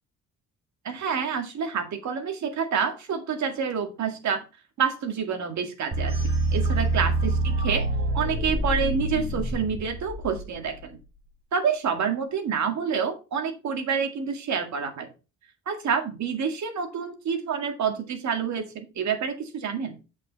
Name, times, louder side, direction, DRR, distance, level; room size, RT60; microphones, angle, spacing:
voice 1, 0.8-4.4 4.8-6.2 6.5-7.9 8.1-11.0 11.5-15.1 15.7-20.0, right 6 dB, 65° right, 6 dB, 2.0 m, -28 dB
sound 1, 5.9-10.8, right 2 dB, 45° right, 5.4 m, -26 dB
8.3 x 5.1 x 4.0 m, 0.30 s
cardioid pair, 90°, 30 cm